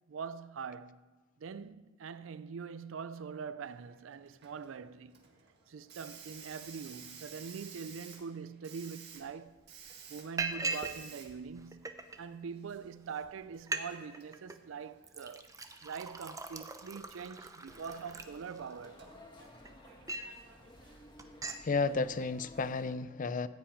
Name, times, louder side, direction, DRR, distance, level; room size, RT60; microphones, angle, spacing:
voice 1, 0.1-1.0 1.4-5.2 5.7-9.6 10.1-11.9 12.2-15.5 15.8-19.0, right 6 dB, 70° right, 0.4 m, -43 dB
Hiss, 3.6-22.0, right 6 dB, 55° right, 1.8 m, -56 dB
Liquid, 9.6-9.9 10.4-11.0 11.3-12.2 12.8-12.9 13.2-13.3 13.6-13.9 14.1-14.6 15.0-18.9 19.4-20.4 20.8-20.9 21.2-21.7, right 3 dB, 15° right, 0.7 m, -40 dB
sound 1, 17.7-22.9, left 1 dB, 25° left, 1.4 m, -56 dB
voice 2, 21.6-23.5, left 4 dB, 40° left, 0.5 m, -32 dB
14.5 x 5.9 x 8.6 m
head